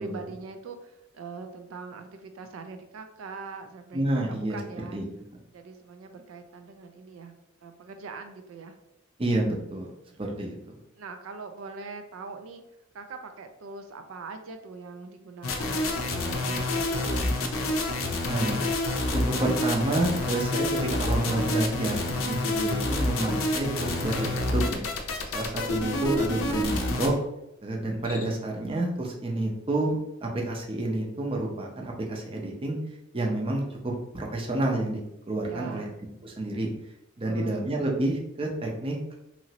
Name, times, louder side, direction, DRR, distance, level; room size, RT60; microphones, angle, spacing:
voice 1, 0.0-5.0 5.5-7.3 7.6-8.7 10.0-10.4 11.0-12.6 12.9-17.3 35.4-35.9 37.2-37.7, right 4 dB, 80° right, 7 dB, 0.4 m, -42 dB
voice 2, 3.9-4.6 4.9-5.1 9.2-9.9 10.2-10.6 18.3-18.7 19.1-24.8 25.3-27.1 27.6-32.8 33.1-35.0 35.3-35.9 36.2-36.7 37.2-39.1, right 2 dB, 25° right, 0 dB, 0.5 m, -29 dB
sound 1, 15.4-27.1, left 2 dB, 85° left, 0.5 m, -28 dB
Cricket, 27.8-28.6, left 4 dB, 35° left, 0.5 m, -47 dB
3.0 x 2.5 x 2.8 m, 0.85 s
head